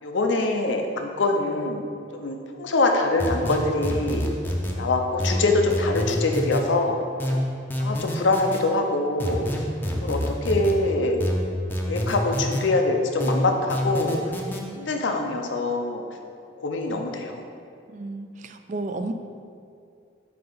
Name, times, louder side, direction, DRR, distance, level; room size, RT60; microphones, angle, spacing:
voice 1, 0.0-1.9 2.1-4.2 4.8-7.0 7.8-9.6 10.0-11.2 11.9-14.2 14.8-16.0 16.6-17.4, left 2 dB, 85° left, 3 dB, 0.7 m, -24 dB
sound 1, 3.2-4.8 5.2-6.6 7.2-8.6 9.2-10.8 11.2-12.6 13.2-14.6, equal, 10° left, 0.6 m, -27 dB
voice 2, 17.9-19.1, right 2 dB, 40° right, 8 dB, 0.4 m, -32 dB
7.6 x 2.9 x 5.4 m, 2.4 s
head